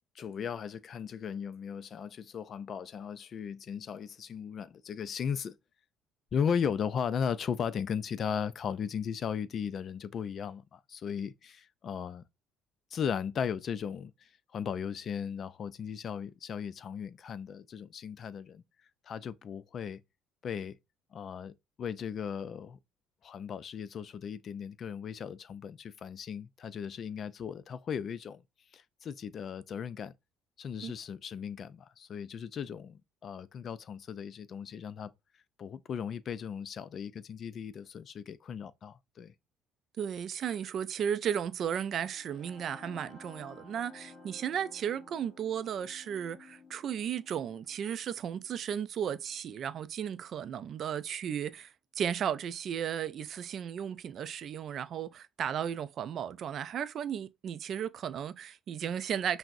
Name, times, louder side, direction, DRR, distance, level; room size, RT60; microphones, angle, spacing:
voice 1, 0.2-5.5 6.3-12.2 12.9-18.6 19.1-20.0 20.4-20.8 21.1-22.8 23.2-28.4 28.7-30.1 30.6-35.1 35.6-39.3, left 7 dB, 50° left, 0.3 m, -37 dB
voice 2, 40.0-59.4, right 8 dB, 55° right, 0.3 m, -35 dB
sound 1, 41.8-49.7, left 3 dB, 35° left, 1.4 m, -55 dB
5.9 x 2.0 x 2.6 m
cardioid pair, 95°, 0 cm